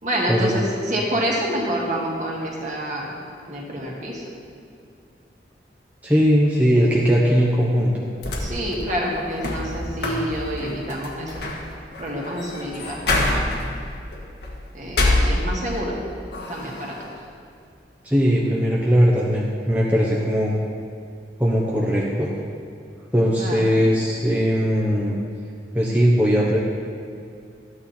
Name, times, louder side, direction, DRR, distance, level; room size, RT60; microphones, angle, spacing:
voice 1, 0.0-3.1 3.5-4.2 8.4-11.4 12.0-13.5 14.7-16.0 16.5-17.1 23.4-23.8, equal, 45° right, -3 dB, 2.1 m, -27 dB
voice 2, 6.0-8.1 18.0-20.5 21.4-22.3 23.1-25.2 25.7-26.6, equal, 10° right, -4 dB, 1.0 m, -19 dB
sound 1, 8.2-15.9 16.3-17.1, left 2 dB, 70° left, 1.7 m, -26 dB
13.5 x 9.5 x 4.3 m, 2.4 s
head